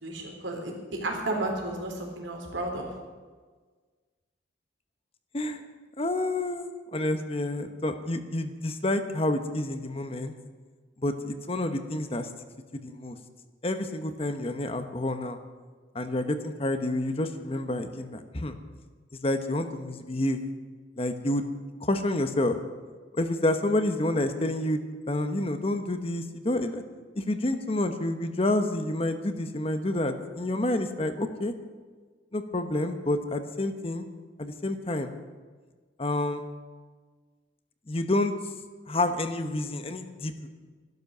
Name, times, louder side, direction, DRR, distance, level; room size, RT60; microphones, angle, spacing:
voice 1, 0.0-2.9, right 2 dB, 90° right, 1 dB, 3.5 m, -32 dB
voice 2, 6.0-10.3 11.0-12.3 12.8-13.2 13.6-15.4 15.9-18.6 19.2-20.4 21.0-21.4 21.8-22.6 23.1-26.8 27.1-31.5 32.3-34.1 34.4-35.1 36.0-36.4 37.9-38.3 38.9-40.5, left 1 dB, 30° left, 8 dB, 1.0 m, -29 dB
13.5 x 12.0 x 6.7 m, 1.5 s
head